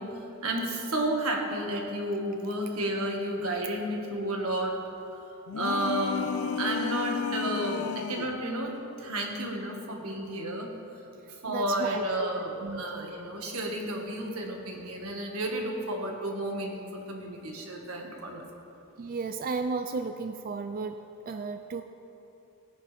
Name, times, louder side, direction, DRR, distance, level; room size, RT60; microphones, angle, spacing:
voice 1, 0.0-4.8 5.3-8.7 9.0-10.7 11.4-18.4, right 1 dB, 85° right, 0 dB, 1.8 m, -32 dB
sound 1, 5.5-8.4, left 6 dB, 70° left, 0.3 m, -32 dB
voice 2, 11.5-12.3 12.6-13.1 19.0-21.0 21.3-21.8, right 4 dB, 40° right, 8 dB, 0.4 m, -34 dB
18.0 x 10.5 x 3.5 m, 2.9 s
head